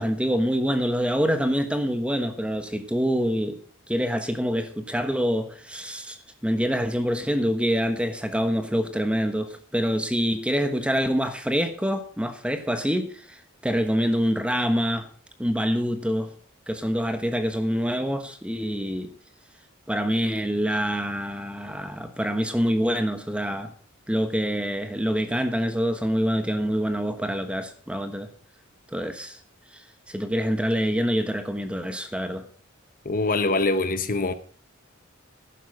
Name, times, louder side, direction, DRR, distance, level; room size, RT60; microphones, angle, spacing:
voice 1, 0.0-3.6 3.9-15.1 15.4-16.3 16.7-19.1 19.9-23.7 24.1-28.3 28.9-29.4 30.1-32.5, equal, 5° right, 1.1 m, -26 dB
voice 2, 33.0-34.3, left 2 dB, 40° left, 0.9 m, -24 dB
12.0 x 10.0 x 4.9 m
head